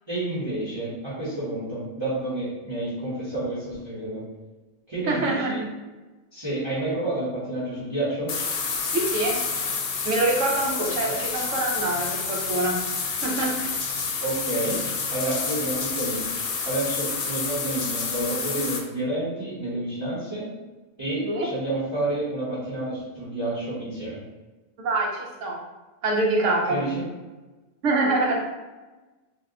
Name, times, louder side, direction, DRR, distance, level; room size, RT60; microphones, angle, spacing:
voice 1, 0.1-4.2 4.9-5.6 6.3-8.3 11.0-11.2 14.2-14.8 15.1-16.2 16.6-20.5 21.0-24.2 26.7-27.0, right 1 dB, 25° right, -9 dB, 0.9 m, -29 dB
voice 2, 5.0-5.5 8.9-9.4 10.0-12.8 13.2-13.7 21.2-21.5 24.8-25.6 26.0-26.8 27.8-28.4, right 2 dB, 80° right, -1 dB, 1.0 m, -25 dB
sound 1, 8.3-18.8, left 5 dB, 80° left, 0.9 m, -29 dB
2.7 x 2.2 x 3.6 m, 1.2 s
omnidirectional pair, 1.2 m